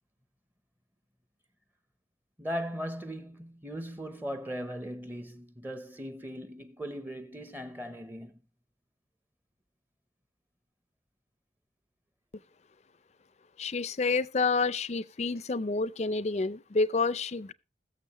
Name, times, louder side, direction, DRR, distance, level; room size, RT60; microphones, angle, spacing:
voice 1, 2.4-8.4, equal, 10° right, 0.7 m, -38 dB
voice 2, 13.6-17.5, left 3 dB, 40° left, 0.5 m, -29 dB
21.0 x 6.9 x 3.0 m
head